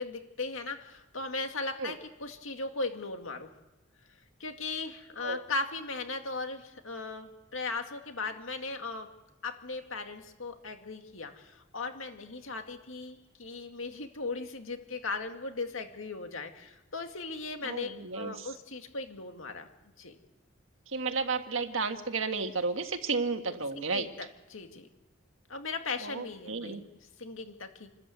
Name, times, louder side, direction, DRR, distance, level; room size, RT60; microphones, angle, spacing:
voice 1, 0.0-3.5 4.4-9.1 9.4-19.7 20.0-20.2 23.7-24.9 25.5-26.8 27.2-27.9, left 3 dB, 75° left, 5 dB, 2.2 m, -38 dB
voice 2, 17.6-18.5 20.9-24.1 26.0-26.8, right 4 dB, 75° right, 6 dB, 1.7 m, -32 dB
27.5 x 13.5 x 8.1 m, 1.0 s
head